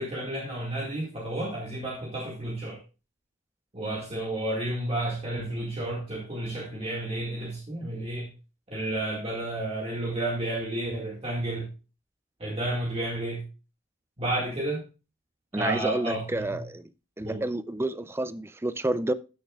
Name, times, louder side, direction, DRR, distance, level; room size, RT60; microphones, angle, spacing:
voice 1, 0.0-2.8 3.7-8.3 8.7-11.7 12.4-13.4 14.2-14.8 15.5-16.6 17.2-17.4, right 1 dB, 30° right, 1.9 m, -31 dB
voice 2, 15.5-16.9 17.2-19.1, right 1 dB, 10° right, 0.4 m, -29 dB
14.5 x 6.4 x 2.4 m
head